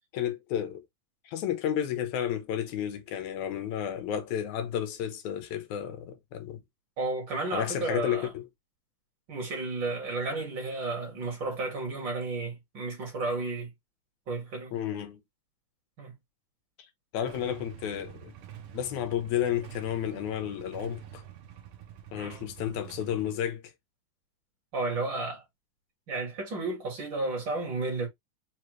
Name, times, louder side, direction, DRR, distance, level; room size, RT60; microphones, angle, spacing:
voice 1, 0.1-0.8 1.3-6.6 7.5-8.4 14.7-15.2 17.1-18.3 18.7-21.2 22.1-23.7, left 10 dB, 80° left, 2.1 m, -32 dB
voice 2, 7.0-8.3 9.3-13.7 14.3-14.7 16.0-16.1 22.1-22.5 24.7-25.4 26.1-28.1, right 3 dB, 45° right, 2.1 m, -32 dB
Motorcycle / Engine starting / Idling, 17.2-23.4, right 10 dB, 70° right, 1.4 m, -47 dB
4.9 x 2.9 x 3.0 m
omnidirectional pair, 3.4 m